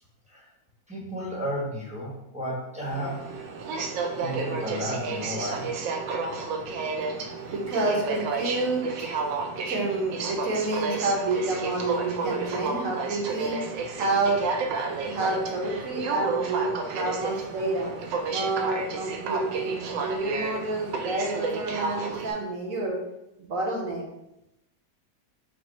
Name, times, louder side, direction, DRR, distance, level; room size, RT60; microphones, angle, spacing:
voice 1, 0.9-3.2 4.2-5.7, equal, 5° right, -6 dB, 0.7 m, -33 dB
Aircraft, 2.9-22.3, right 4 dB, 80° right, 1.2 m, -31 dB
voice 2, 7.1-9.1 9.6-13.6 13.9-14.4 15.1-17.9 18.3-23.0 23.4-24.0, right 2 dB, 55° right, -1 dB, 1.1 m, -29 dB
5.8 x 2.0 x 4.1 m, 0.88 s
omnidirectional pair, 2.0 m